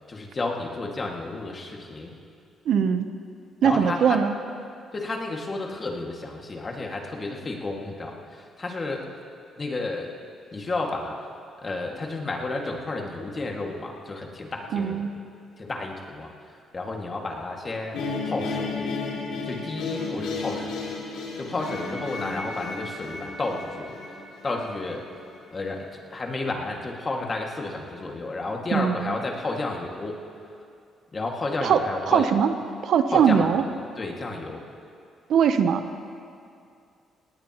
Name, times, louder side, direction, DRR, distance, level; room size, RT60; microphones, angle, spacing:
voice 1, 0.1-2.1 3.6-4.2 4.9-9.1 9.6-10.2 10.5-11.2 11.6-15.1 15.6-16.3 16.7-18.9 19.5-20.9 21.1-24.0 24.4-25.0 25.5-30.2 31.1-32.3 33.1-33.5 34.0-34.6, left 2 dB, 35° left, 1 dB, 2.0 m, -31 dB
voice 2, 2.7-3.1 3.6-4.4 14.7-15.1 28.7-29.1 31.6-32.5 32.8-33.6 35.3-35.8, right 7 dB, 70° right, 9 dB, 0.8 m, -21 dB
sound 1, 17.9-25.0, left 3 dB, 85° left, 2.5 m, -33 dB
18.5 x 18.0 x 3.0 m, 2.4 s
cardioid pair, 90°, 0 cm